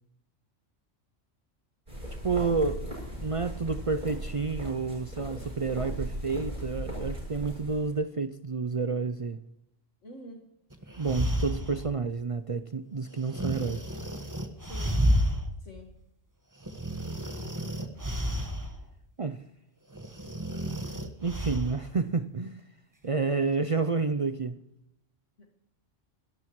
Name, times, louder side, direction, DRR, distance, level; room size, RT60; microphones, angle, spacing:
sound 1, 1.9-7.9, equal, 40° right, 7.8 m, -37 dB
voice 1, 2.2-2.9 3.2-9.4 11.0-13.9 19.2-19.4 21.2-22.6 23.0-24.6, right 4 dB, 55° right, 0.3 m, -30 dB
voice 2, 10.0-10.5 14.6-15.0 15.6-16.0 25.4-25.5, equal, 70° left, 2.0 m, -46 dB
sound 2, 10.7-11.9 13.3-15.5 15.9-16.0 16.6-18.8 19.9-21.8, equal, 15° right, 1.3 m, -30 dB
28.0 x 13.0 x 3.1 m
omnidirectional pair, 1.3 m